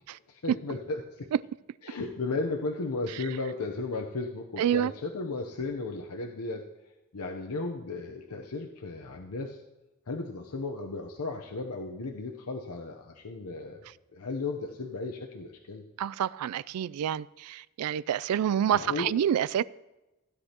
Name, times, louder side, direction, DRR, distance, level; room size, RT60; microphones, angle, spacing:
voice 1, 0.3-1.3 1.8-6.7 7.1-9.6 10.1-13.9 14.1-15.8 18.7-19.1, left 3 dB, 85° left, 0.8 m, -35 dB
voice 2, 4.6-4.9 16.0-19.6, right 9 dB, 80° right, 0.3 m, -28 dB
16.0 x 9.8 x 2.9 m
head